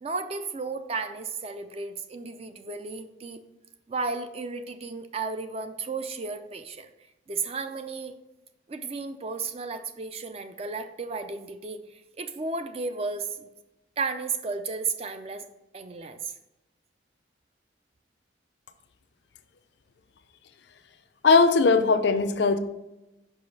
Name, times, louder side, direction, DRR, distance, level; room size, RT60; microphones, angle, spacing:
voice 1, 0.0-3.4 3.9-6.9 7.3-8.1 8.7-13.5 14.0-15.4 15.7-16.3, right 4 dB, 30° right, 9 dB, 0.4 m, -33 dB
voice 2, 21.2-22.6, left 4 dB, 65° left, 10 dB, 0.5 m, -19 dB
5.6 x 4.9 x 4.0 m, 0.97 s
head